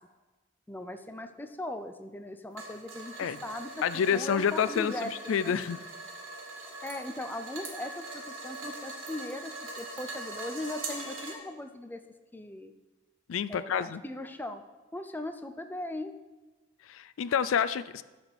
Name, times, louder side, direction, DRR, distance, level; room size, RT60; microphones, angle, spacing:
voice 1, 0.7-3.7 4.1-5.6 6.8-12.0 12.3-12.7 13.5-14.6 14.9-16.1, left 1 dB, 10° left, 8 dB, 0.5 m, -39 dB
sound 1, 2.5-11.3, right 2 dB, 75° right, 2.0 m, -42 dB
voice 2, 3.8-5.8 13.3-14.0 16.9-18.0, left 7 dB, 80° left, 16 dB, 0.4 m, -28 dB
12.0 x 4.3 x 7.1 m, 1.2 s
head